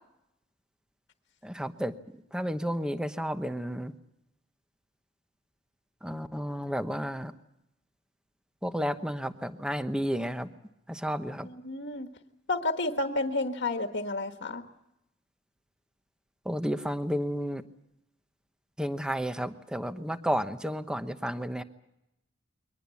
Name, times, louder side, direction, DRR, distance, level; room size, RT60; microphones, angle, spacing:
voice 1, 1.4-1.9 2.3-3.9 6.0-7.3 8.6-10.5 10.9-11.5 16.4-17.6 18.8-21.6, equal, 5° right, 10 dB, 1.0 m, -32 dB
voice 2, 11.4-12.1 12.5-14.6, left 2 dB, 60° left, 5 dB, 1.5 m, -31 dB
23.0 x 19.0 x 8.4 m, 0.85 s
head